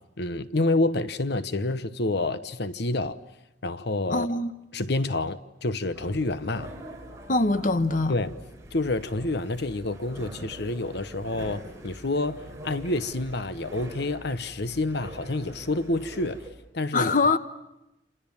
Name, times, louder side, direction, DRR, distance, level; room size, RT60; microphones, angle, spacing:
voice 1, 0.2-3.2 3.6-4.3 4.7-6.7 8.1-8.3 8.7-16.4 16.7-17.1, left 2 dB, 65° left, 1.1 m, -28 dB
voice 2, 4.1-4.5 7.3-8.1 16.9-17.4, left 3 dB, 45° left, 1.1 m, -23 dB
sound 1, 5.9-16.5, right 1 dB, 15° right, 5.2 m, -44 dB
28.5 x 28.5 x 7.3 m
head